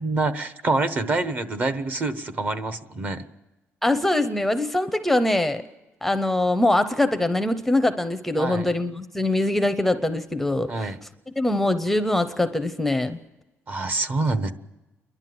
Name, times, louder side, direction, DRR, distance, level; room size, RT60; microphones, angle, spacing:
voice 1, 0.0-3.2 8.4-8.7 10.7-11.0 13.7-14.5, right 3 dB, 35° right, 12 dB, 1.1 m, -26 dB
voice 2, 3.8-5.6 6.0-10.9 11.4-13.2, left 1 dB, 5° left, 11 dB, 0.6 m, -23 dB
29.5 x 11.5 x 7.7 m, 1.1 s
cardioid pair, 145°, 5 cm